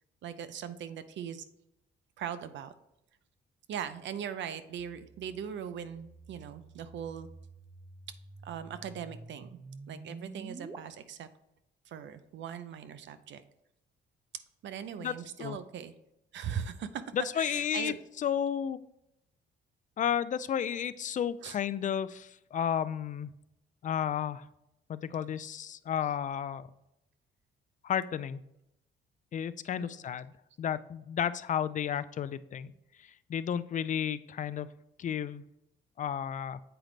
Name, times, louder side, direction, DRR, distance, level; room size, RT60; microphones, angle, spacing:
voice 1, 0.2-1.4 2.2-2.7 3.7-7.3 8.4-9.5 9.9-11.3 11.9-13.4 14.6-15.9 16.3-17.0 17.4-18.0 21.4-21.6 29.8-30.0, right 8 dB, 70° right, 12 dB, 0.6 m, -40 dB
sound 1, 4.8-10.8, right 3 dB, 20° right, 0.6 m, -49 dB
voice 2, 15.0-15.6 17.1-18.8 20.0-23.3 23.8-24.4 24.9-26.7 27.8-28.4 29.3-30.3 30.6-32.7 33.0-34.7 35.0-35.4 36.0-36.6, left 9 dB, 40° left, 15 dB, 0.4 m, -32 dB
7.9 x 4.9 x 3.2 m, 0.85 s
cardioid pair, 90°, 20 cm